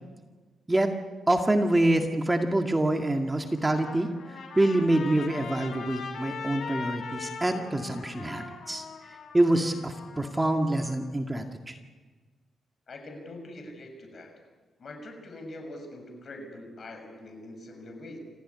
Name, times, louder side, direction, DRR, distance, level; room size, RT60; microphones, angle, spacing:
voice 1, 1.3-8.8 9.3-11.8, right 1 dB, 15° right, 4 dB, 2.0 m, -26 dB
Trumpet, 3.5-10.9, left 5 dB, 70° left, 5.2 m, -41 dB
voice 2, 12.9-14.3 14.8-18.2, left 1 dB, 50° left, 5 dB, 6.6 m, -43 dB
27.5 x 15.5 x 9.8 m, 1.4 s
cardioid pair, 100°, 0 cm